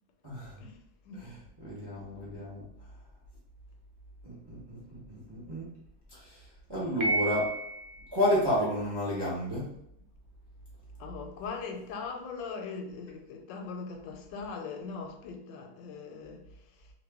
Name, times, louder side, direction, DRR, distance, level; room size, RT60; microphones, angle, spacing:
voice 1, 0.2-0.5 1.2-2.6 4.2-5.7 6.1-6.4 6.7-7.5 8.1-9.6, left 1 dB, 25° right, 0.6 m, -31 dB
Piano, 7.0-8.1, right 2 dB, 80° right, 1.2 m, -31 dB
voice 2, 11.0-16.5, left 4 dB, 85° left, 1.3 m, -40 dB
2.9 x 2.4 x 3.4 m
omnidirectional pair, 1.9 m